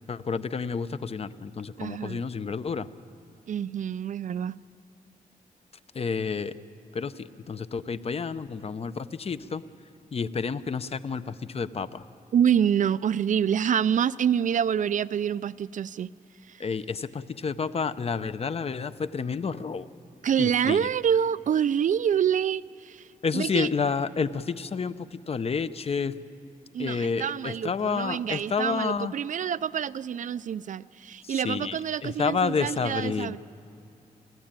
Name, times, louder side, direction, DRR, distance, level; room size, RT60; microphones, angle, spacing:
voice 1, 0.1-2.9 5.9-6.5 6.9-9.6 10.1-12.0 16.6-19.9 20.4-20.9 23.2-26.1 26.8-29.1 31.2-33.4, left 5 dB, 45° left, 13 dB, 0.7 m, -30 dB
voice 2, 1.8-2.2 3.5-4.6 12.3-16.1 16.5-16.6 20.2-23.1 23.3-23.7 26.7-33.4, right 8 dB, 60° right, 17 dB, 0.4 m, -26 dB
29.5 x 12.5 x 8.9 m, 2.8 s
wide cardioid pair, 135°, 15 cm